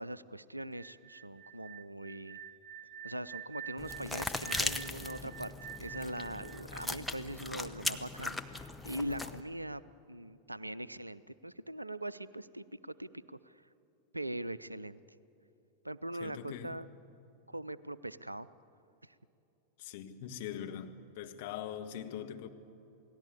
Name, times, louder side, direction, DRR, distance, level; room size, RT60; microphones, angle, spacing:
voice 1, 0.0-2.4 3.0-9.8 10.1-13.6 14.1-15.0 15.8-16.9 17.5-18.5 19.0-19.1, right 1 dB, 85° right, 0.5 m, -41 dB
sound 1, 0.7-7.6, right 9 dB, 50° right, 0.7 m, -48 dB
sound 2, 3.8-9.4, left 2 dB, 5° left, 1.0 m, -39 dB
voice 2, 16.2-16.9 19.8-22.5, left 9 dB, 50° left, 1.6 m, -42 dB
28.0 x 18.5 x 8.4 m
figure-of-eight pair, 90°, 0 cm